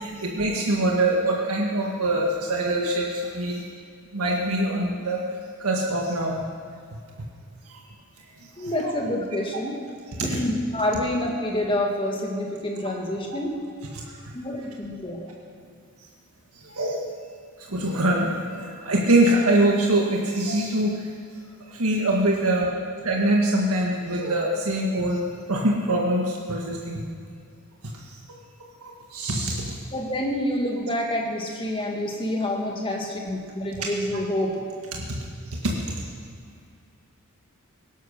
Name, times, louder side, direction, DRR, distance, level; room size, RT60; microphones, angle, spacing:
voice 1, 0.0-3.6 4.1-5.2 5.6-6.4 7.6-7.8 8.4-8.9 10.2-10.3 13.3-13.4 13.9-14.3 16.5-17.0 17.6-21.1 21.6-22.7 23.0-25.2 25.5-27.0 27.9-28.2 28.8-29.8 33.8-33.9 34.4-34.5 35.0-35.2 35.5-36.1, right 1 dB, 85° right, -1 dB, 1.7 m, -24 dB
voice 2, 8.6-9.8 10.2-13.6 14.3-15.3 29.9-34.6, left 1 dB, 25° left, 0 dB, 2.1 m, -27 dB
18.0 x 11.0 x 6.5 m, 2.3 s
head